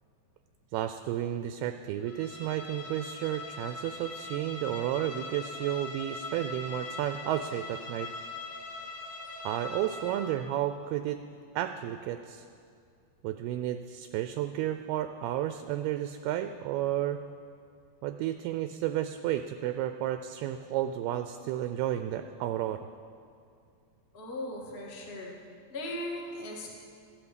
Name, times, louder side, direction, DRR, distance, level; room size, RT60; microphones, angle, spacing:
voice 1, 0.7-8.1 9.4-11.2 11.6-12.5 13.2-17.2 18.0-22.8 26.5-26.6, right 12 dB, 85° right, 9 dB, 2.3 m, -32 dB
Bowed string instrument, 2.0-10.4, left 3 dB, 70° left, 1.3 m, -41 dB
voice 2, 24.1-25.3 25.7-26.8, left 1 dB, 30° left, -3 dB, 1.0 m, -38 dB
15.0 x 9.0 x 8.1 m, 2.4 s
omnidirectional pair, 4.9 m